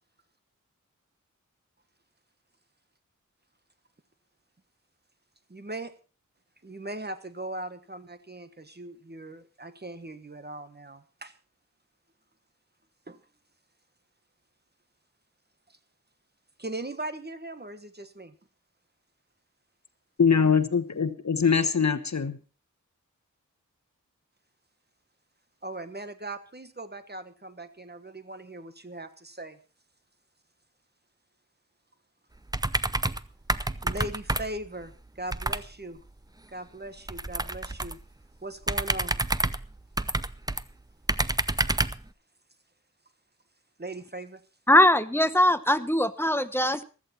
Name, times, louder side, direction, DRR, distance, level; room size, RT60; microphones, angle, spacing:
voice 1, 5.5-5.9 6.6-11.3 13.1-13.2 16.6-18.3 25.6-29.6 33.8-36.0 36.5-38.0 38.4-39.2 43.8-44.4, right 2 dB, 30° right, 1.4 m, -39 dB
voice 2, 20.2-22.4, left 6 dB, 60° left, 1.1 m, -23 dB
sound 1, 32.5-33.2 33.5-34.7 35.3-35.7 37.1-38.0 38.6-40.6 41.1-42.0, right 2 dB, 10° right, 0.6 m, -28 dB
voice 3, 44.7-46.8, left 1 dB, 5° left, 1.0 m, -21 dB
15.5 x 13.5 x 4.4 m
wide cardioid pair, 80°, 31 cm